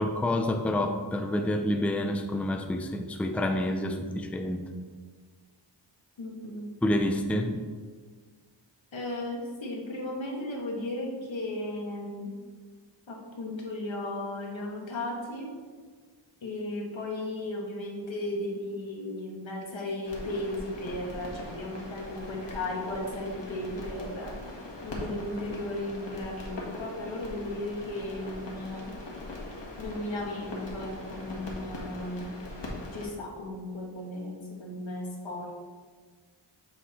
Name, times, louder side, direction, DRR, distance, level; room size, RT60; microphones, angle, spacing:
voice 1, 0.0-4.6 6.8-7.5, left 1 dB, 5° left, 5 dB, 0.5 m, -28 dB
voice 2, 6.2-6.7 8.9-12.3 13.1-15.5 16.4-24.4 24.8-29.0 29.8-32.3 32.9-35.6, left 1 dB, 85° left, -1 dB, 1.7 m, -35 dB
sound 1, 20.1-33.1, left 2 dB, 65° left, 1.7 m, -41 dB
8.3 x 4.7 x 4.3 m, 1.5 s
wide cardioid pair, 105°, 45 cm